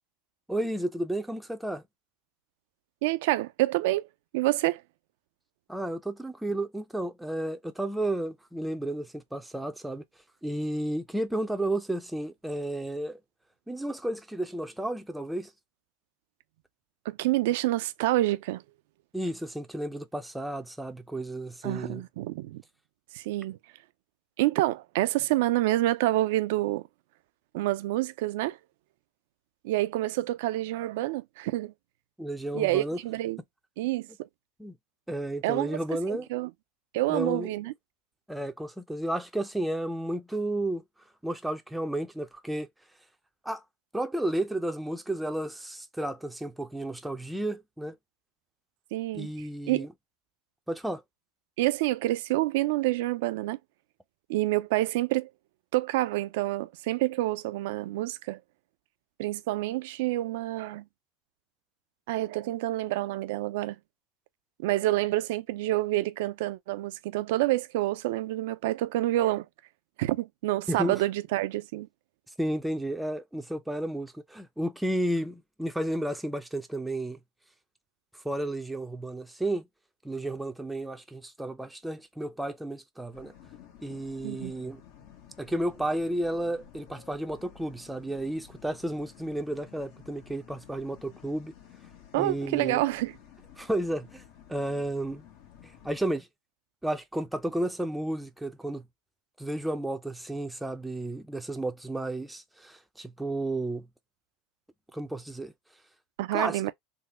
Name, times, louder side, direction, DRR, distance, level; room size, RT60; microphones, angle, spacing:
voice 1, 0.5-1.8 5.7-10.0 10.4-13.2 13.7-15.5 19.1-22.0 32.2-33.0 34.6-34.8 35.1-36.3 37.1-37.5 38.3-40.8 41.2-42.7 43.4-43.6 43.9-48.0 49.1-49.9 50.7-51.0 70.7-71.0 72.4-77.2 78.2-79.7 80.0-83.3 83.8-84.8 85.4-91.5 92.2-92.8 93.6-94.2 94.5-95.2 95.6-96.3 96.8-98.9 99.4-103.9 104.9-105.5 106.3-106.7, right 1 dB, 5° right, 0.5 m, -32 dB
voice 2, 3.0-4.1 4.3-4.8 17.1-18.6 21.6-22.6 23.1-23.6 24.4-26.8 27.5-28.6 29.6-31.7 32.5-33.4 33.8-34.3 35.4-36.5 36.9-37.7 48.9-49.3 49.7-49.8 51.6-53.6 54.3-55.3 55.7-58.4 59.2-60.9 62.1-63.8 64.6-69.5 70.0-71.9 84.2-84.5 92.1-93.1 106.2-106.7, right 17 dB, 75° right, 0.4 m, -28 dB
sound 1, 83.1-96.1, left 9 dB, 65° left, 1.3 m, -53 dB
3.6 x 2.0 x 3.0 m
supercardioid pair, 110°, 0 cm